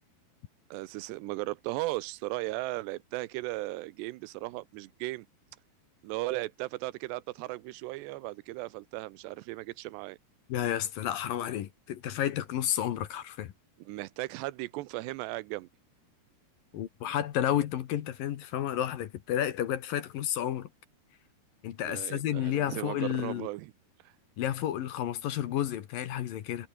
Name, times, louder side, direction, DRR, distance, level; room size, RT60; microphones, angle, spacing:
voice 1, 0.7-5.3 6.0-10.2 13.8-15.7 21.8-23.7, right 19 dB, 85° right, 2.8 m, -36 dB
voice 2, 10.5-13.5 16.7-20.7 21.6-23.5 24.4-26.7, left 11 dB, 65° left, 2.8 m, -31 dB
omnidirectional pair, 4.9 m